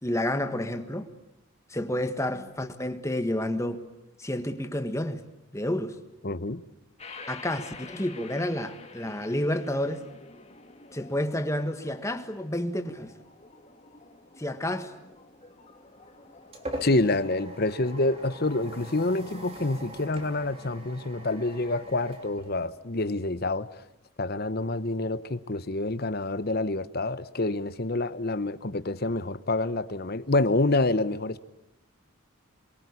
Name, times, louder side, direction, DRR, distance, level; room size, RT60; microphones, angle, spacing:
voice 1, 0.0-1.1 1.7-3.8 4.2-5.2 5.5-6.0 7.3-10.0 10.9-13.1 14.4-14.9, left 1 dB, 15° left, 1.6 m, -30 dB
voice 2, 6.2-6.6 16.8-23.7 24.2-31.4, left 2 dB, 45° left, 1.0 m, -27 dB
sound 1, 7.0-20.0, left 3 dB, 30° left, 2.4 m, -49 dB
sound 2, 15.8-23.2, right 1 dB, 25° right, 3.2 m, -43 dB
27.5 x 23.0 x 8.5 m
head